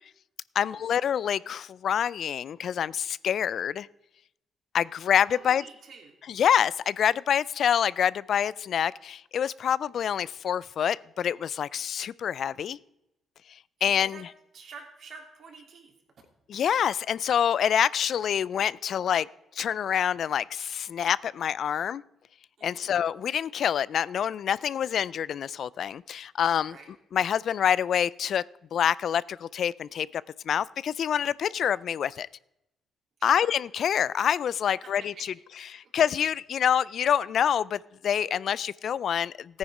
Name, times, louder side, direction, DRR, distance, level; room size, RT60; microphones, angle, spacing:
voice 1, 0.6-3.9 4.7-5.6 6.3-12.8 13.8-14.2 16.5-19.3 19.6-22.0 22.6-26.7 27.1-28.4 28.7-32.3 33.2-35.1 35.7-39.6, left 9 dB, 60° left, 21 dB, 0.3 m, -26 dB
voice 2, 5.3-6.2 13.8-14.2 14.5-15.9 22.6-22.9 26.7-26.9 33.2-33.5 34.8-35.3 35.8-35.9, right 4 dB, 60° right, 2 dB, 3.2 m, -48 dB
14.5 x 9.5 x 4.9 m, 0.85 s
cardioid pair, 90°, 0 cm